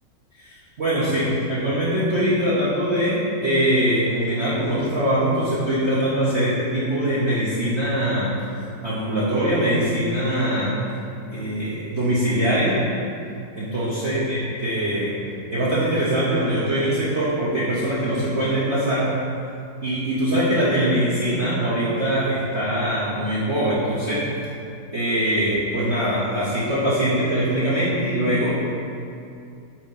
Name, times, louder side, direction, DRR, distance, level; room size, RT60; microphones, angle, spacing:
voice 1, 0.4-8.3 8.8-10.8 11.3-12.9 13.6-15.2 15.5-19.1 19.8-24.3 24.9-28.6, right 1 dB, 45° right, -9 dB, 1.1 m, -22 dB
5.7 x 4.2 x 5.3 m, 2.4 s
omnidirectional pair, 1.9 m